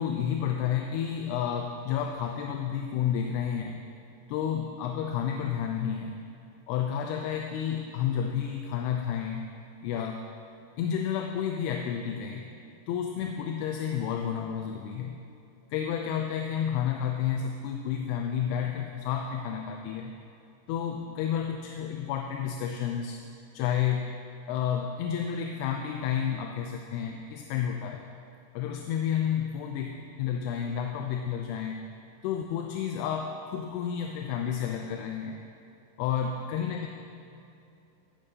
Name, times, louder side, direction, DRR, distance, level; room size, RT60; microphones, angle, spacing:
voice 1, 0.0-3.9 4.3-6.2 6.7-9.5 9.8-10.2 10.8-12.4 12.9-15.2 15.7-20.1 20.7-23.2 23.5-24.1 24.5-28.1 28.5-31.8 32.2-35.4 36.0-36.9, left 8 dB, 85° left, 3 dB, 2.6 m, -31 dB
14.0 x 10.0 x 2.8 m, 2.7 s
omnidirectional pair, 4.6 m